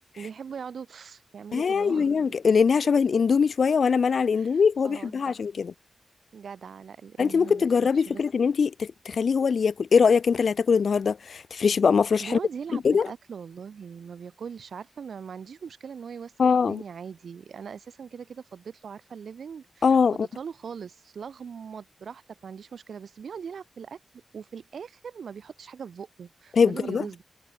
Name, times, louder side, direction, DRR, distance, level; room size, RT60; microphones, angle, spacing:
voice 1, 0.2-2.4 4.3-5.4 6.3-8.2 12.2-24.0 24.3-27.2, right 6 dB, 80° right, 6.6 m, -41 dB
voice 2, 1.5-5.7 7.2-12.4 12.8-13.1 16.4-16.8 19.8-20.1 26.5-27.0, left 6 dB, 65° left, 0.3 m, -22 dB
wide cardioid pair, 150°, 0 cm